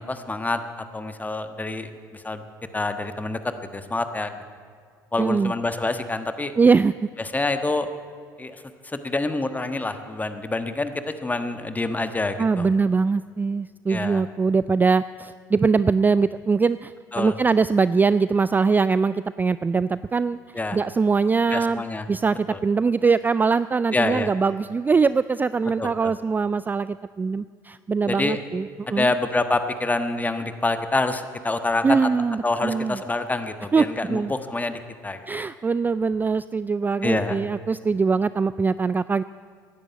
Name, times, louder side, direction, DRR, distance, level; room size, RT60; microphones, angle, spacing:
voice 1, 0.0-2.4 2.7-3.4 3.7-4.4 5.1-6.5 7.2-7.9 8.4-10.9 11.2-12.7 13.9-14.2 17.1-17.3 20.5-20.8 21.5-22.1 22.5-22.6 23.9-24.3 25.8-26.1 28.1-28.4 28.9-32.1 32.4-35.2 37.0-37.4, left 2 dB, 15° left, 9 dB, 1.3 m, -27 dB
voice 2, 5.2-5.5 6.6-6.9 12.4-20.4 20.7-29.1 31.8-33.0 33.7-34.3 35.3-39.2, right 4 dB, 20° right, 16 dB, 0.3 m, -22 dB
16.0 x 11.0 x 8.2 m, 2.1 s
hypercardioid pair, 60°, 10 cm